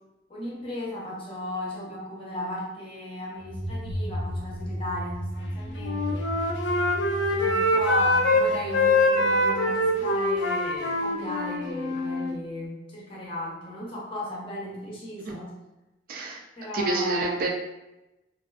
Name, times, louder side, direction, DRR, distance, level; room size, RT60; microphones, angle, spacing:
voice 1, 0.3-6.3 7.3-15.5 16.6-17.5, left 1 dB, 30° left, -4 dB, 0.6 m, -35 dB
sound 1, 3.4-10.0, equal, 10° right, 0.7 m, -35 dB
Wind instrument woodwind instrument, 5.7-8.4 8.7-12.3, left 1 dB, 85° left, 0.4 m, -24 dB
voice 2, 16.1-16.4 16.7-17.5, right 2 dB, 50° right, 0 dB, 0.3 m, -27 dB
2.3 x 2.3 x 2.3 m, 0.96 s
head